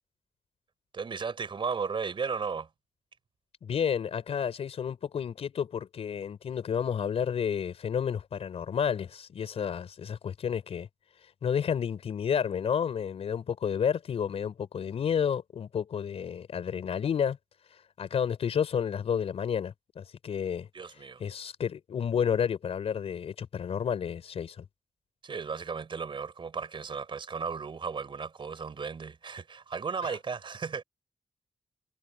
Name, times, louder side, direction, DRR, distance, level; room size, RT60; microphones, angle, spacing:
voice 1, 0.9-2.7 20.7-21.2 25.2-30.8, right 5 dB, 55° right, 3.8 m, -35 dB
voice 2, 3.6-10.9 11.2-17.4 17.7-20.7 21.2-24.6 30.0-30.2, left 7 dB, 75° left, 5.0 m, -31 dB
cardioid pair, 70°, 10 cm